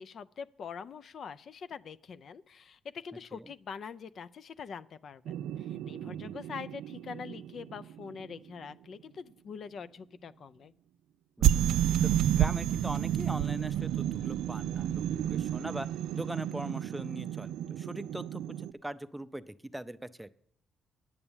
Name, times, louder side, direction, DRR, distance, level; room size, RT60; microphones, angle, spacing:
voice 1, 0.0-10.7, left 6 dB, 55° left, 13 dB, 0.4 m, -44 dB
sound 1, 5.3-8.3 11.4-18.7, right 11 dB, 85° right, 0.3 m, -31 dB
voice 2, 6.0-6.4 11.4-11.5 12.0-15.9 16.1-20.3, right 1 dB, 5° right, 13 dB, 0.5 m, -41 dB
9.7 x 6.9 x 7.1 m, 0.67 s
cardioid pair, 90°, 0 cm